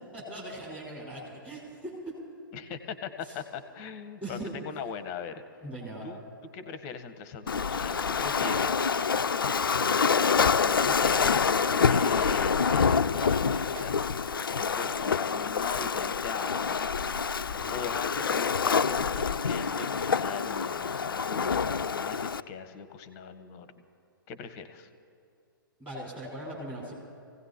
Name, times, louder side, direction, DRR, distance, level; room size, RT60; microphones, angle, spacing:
voice 1, 0.1-1.9 3.2-3.4 4.2-4.5 5.6-6.1 17.5-17.9 25.8-26.9, right 1 dB, 10° right, -5 dB, 4.6 m, -40 dB
voice 2, 2.5-5.4 6.0-6.2 6.5-8.9 10.7-11.6 11.9-14.1 14.5-16.8 17.7-23.7 24.3-24.9, left 6 dB, 30° left, 10 dB, 0.9 m, -40 dB
Waves surf, 7.5-22.4, left 6 dB, 70° left, 0.4 m, -26 dB
Keyboard (musical), 7.9-8.1 8.5-8.6 9.0-9.1 9.5-9.6 10.0-10.2 10.6-10.7 11.1-11.2 11.6-11.8 12.2-12.3 12.7-12.8 13.2-13.4 13.8-13.9, right 4 dB, 30° right, 0.5 m, -43 dB
25.5 x 16.5 x 2.8 m, 2.4 s
figure-of-eight pair, 120°, 12 cm